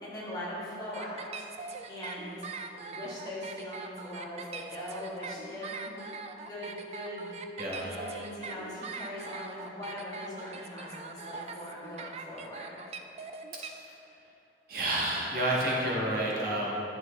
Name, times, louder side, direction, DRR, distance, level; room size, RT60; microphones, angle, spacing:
voice 1, 0.0-2.4 2.7-6.2 6.5-7.3 7.8-12.7, left 1 dB, 20° left, -7 dB, 1.8 m, -41 dB
sound 1, 0.9-13.7, right 4 dB, 35° right, 0.3 m, -42 dB
voice 2, 7.6-7.9 14.7-16.8, right 1 dB, 55° right, -4 dB, 1.5 m, -29 dB
10.0 x 7.5 x 3.2 m, 2.9 s
head